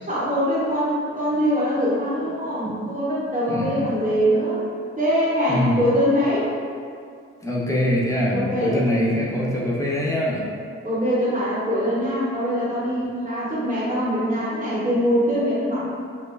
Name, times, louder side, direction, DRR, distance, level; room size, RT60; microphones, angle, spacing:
voice 1, 0.0-4.6 5.0-6.5 8.3-8.8 10.8-15.9, equal, 25° right, -10 dB, 0.9 m, -23 dB
voice 2, 3.5-3.9 5.5-5.8 7.4-10.4, left 1 dB, 10° left, -4 dB, 0.7 m, -23 dB
3.1 x 2.2 x 2.3 m, 2.3 s
hypercardioid pair, 40°, 33 cm